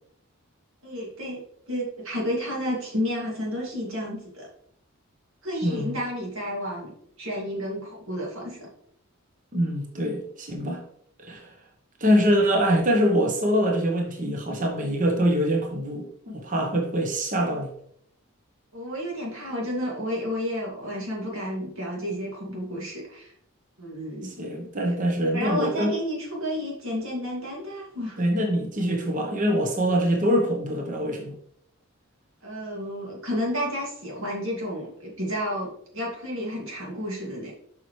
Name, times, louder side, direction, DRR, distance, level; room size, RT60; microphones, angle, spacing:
voice 1, 0.8-1.4 1.7-4.5 5.4-6.9 7.2-8.7 18.7-23.3 23.8-24.3 24.9-25.0 25.3-28.2 32.4-37.5, equal, 65° right, -3 dB, 2.3 m, -31 dB
voice 2, 5.6-5.9 9.5-10.8 11.3-11.5 12.0-17.7 24.4-25.9 28.2-31.3, equal, 35° right, 2 dB, 1.0 m, -24 dB
7.3 x 5.7 x 3.2 m, 0.68 s
head